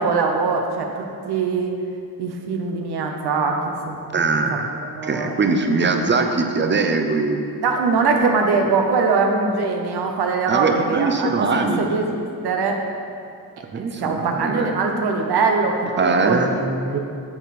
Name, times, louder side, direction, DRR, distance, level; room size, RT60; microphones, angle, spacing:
voice 1, 0.0-1.7 2.2-4.4 5.0-5.3 7.6-12.8 14.0-16.5 16.9-17.0, right 4 dB, 80° right, 2 dB, 1.0 m, -22 dB
voice 2, 4.1-4.7 5.0-7.4 10.5-12.1 13.7-14.7 16.0-17.0, right 3 dB, 30° right, 5 dB, 0.6 m, -21 dB
8.9 x 6.4 x 4.2 m, 2.5 s
wide cardioid pair, 135°, 38 cm